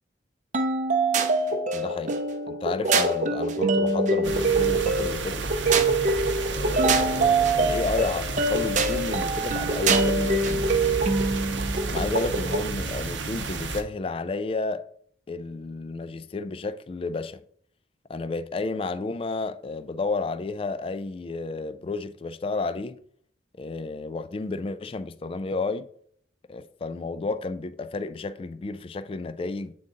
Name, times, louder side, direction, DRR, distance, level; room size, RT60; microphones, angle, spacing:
sound 1, 0.5-12.7, right 3 dB, 40° right, 0.6 m, -24 dB
voice 1, 1.7-5.5 6.5-11.0 11.9-14.8 15.3-17.4 18.1-23.0 23.6-25.9 26.5-29.7, left 3 dB, 30° left, 0.3 m, -32 dB
sound 2, 4.2-13.8, right 3 dB, 80° right, 0.7 m, -31 dB
8.6 x 3.8 x 3.7 m
head